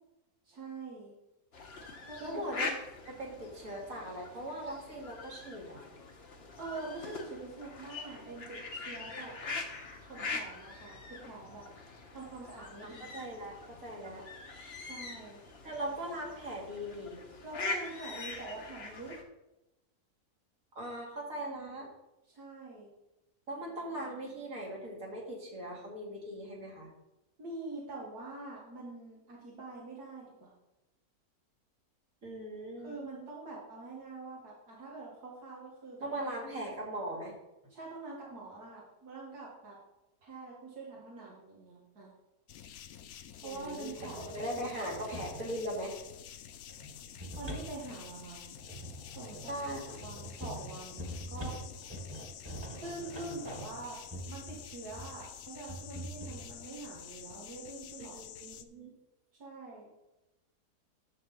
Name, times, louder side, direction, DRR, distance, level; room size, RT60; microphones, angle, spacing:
voice 1, 0.4-1.1 2.1-2.4 6.6-9.3 10.0-11.7 12.1-13.0 14.8-15.4 17.4-19.2 22.3-22.9 27.4-30.5 32.8-36.1 37.7-39.8 40.2-42.1 43.4-45.0 47.4-48.4 49.2-49.5 50.0-51.6 52.8-54.0 54.3-58.2 59.4-59.9, right 3 dB, 80° right, -5 dB, 2.3 m, -45 dB
sound 1, 1.5-19.2, left 3 dB, 45° left, 1.2 m, -43 dB
voice 2, 2.2-2.7 3.0-5.8 12.8-14.2 15.6-17.2 20.7-21.9 23.5-26.9 32.2-33.0 36.0-37.4 43.4-46.0 49.5-50.0 58.0-58.9, right 1 dB, 60° right, -2 dB, 2.7 m, -40 dB
sound 2, 42.5-58.6, left 10 dB, 75° left, 1.0 m, -49 dB
sound 3, 44.0-45.6 46.7-55.2 55.7-56.5, equal, 15° right, 1.7 m, -44 dB
10.5 x 3.9 x 7.0 m, 0.95 s
omnidirectional pair, 1.6 m